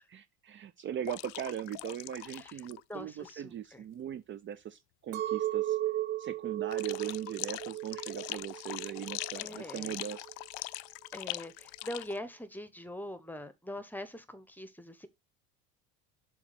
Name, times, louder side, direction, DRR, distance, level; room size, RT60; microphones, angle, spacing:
voice 1, 0.1-5.8 6.2-10.3, right 10 dB, 35° right, 0.5 m, -40 dB
sound 1, 1.0-2.8 3.1-3.3 6.7-12.2, left 22 dB, 70° left, 0.5 m, -42 dB
voice 2, 2.9-3.8 9.4-9.9 11.1-15.1, left 1 dB, 5° left, 1.0 m, -43 dB
Chink clink, 5.1-9.4 9.9-10.4, right 14 dB, 60° right, 0.9 m, -35 dB
7.1 x 3.0 x 6.0 m
supercardioid pair, 100°, 33 cm